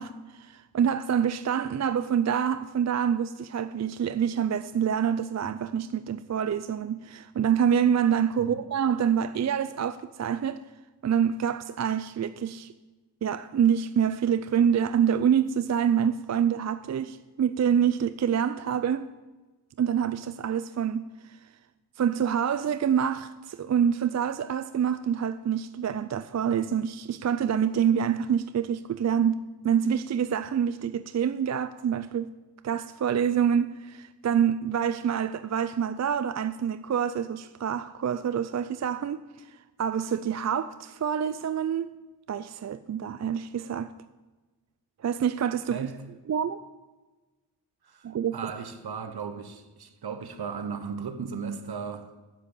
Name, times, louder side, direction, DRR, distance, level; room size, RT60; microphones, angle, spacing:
voice 1, 0.0-10.6 11.0-12.7 13.2-19.1 19.8-21.1 22.0-32.3 32.6-39.2 39.8-41.9 42.3-43.9 45.0-45.8 46.3-46.6 48.0-48.5, right 8 dB, 40° right, 0.4 m, -26 dB
voice 2, 45.7-46.0 47.8-52.1, right 6 dB, 65° right, 1.0 m, -36 dB
7.6 x 7.4 x 8.3 m
cardioid pair, 60°, 42 cm